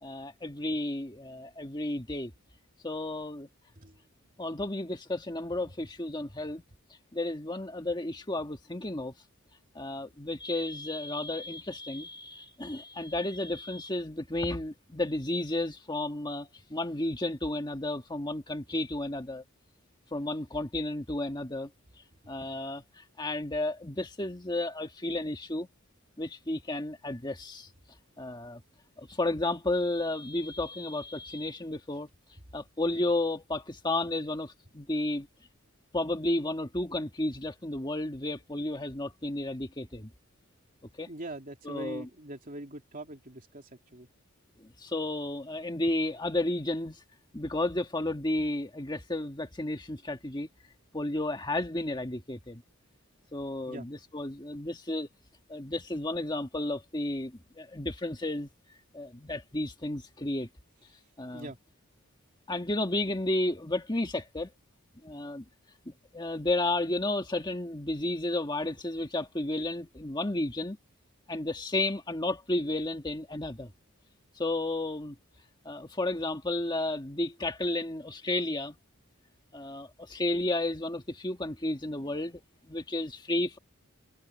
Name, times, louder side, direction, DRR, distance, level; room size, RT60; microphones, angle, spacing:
voice 1, 0.0-2.3 2.8-3.5 4.4-6.6 7.1-9.1 9.8-19.4 20.1-21.7 22.3-25.7 26.2-27.7 28.2-28.6 29.0-32.1 32.5-35.3 35.9-40.1 41.0-41.1 41.7-42.0 44.6-47.0 47.3-50.5 50.9-52.6 53.3-55.1 55.5-58.5 58.9-60.5 61.2-61.5 62.5-64.5 65.0-65.5 65.9-70.8 71.3-73.7 74.4-75.2 75.7-78.8 79.5-82.4 82.7-83.6, left 2 dB, 20° left, 1.8 m, -32 dB
voice 2, 22.2-22.6 41.1-44.1 53.7-53.9 61.3-61.6 74.9-75.0, right 1 dB, 40° right, 3.2 m, -43 dB
head